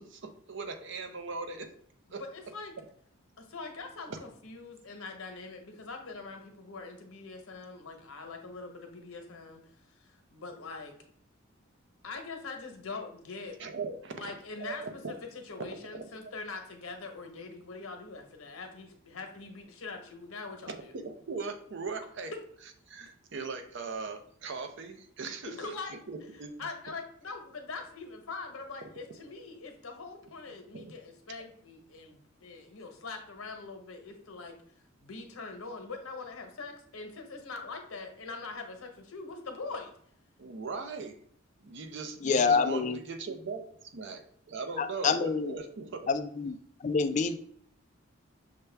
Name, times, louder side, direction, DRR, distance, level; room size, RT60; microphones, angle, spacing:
voice 1, 0.0-1.7 2.1-2.2 4.1-4.2 13.6-14.2 14.6-15.1 15.6-16.1 20.7-22.3 22.9-25.7 26.1-26.5 30.7-30.9 40.4-41.2 41.6-46.1, right 4 dB, 60° right, 6 dB, 0.6 m, -39 dB
voice 2, 2.2-2.7 3.4-10.9 12.0-13.6 14.2-14.8 15.1-15.2 15.5-20.9 25.4-26.0 26.6-34.6 35.0-39.9, left 4 dB, 90° left, 4 dB, 1.0 m, -43 dB
voice 3, 42.2-43.0 44.8-45.5 46.1-46.6 46.8-47.4, left 5 dB, 35° left, 9 dB, 0.3 m, -27 dB
6.5 x 2.2 x 3.3 m, 0.63 s
head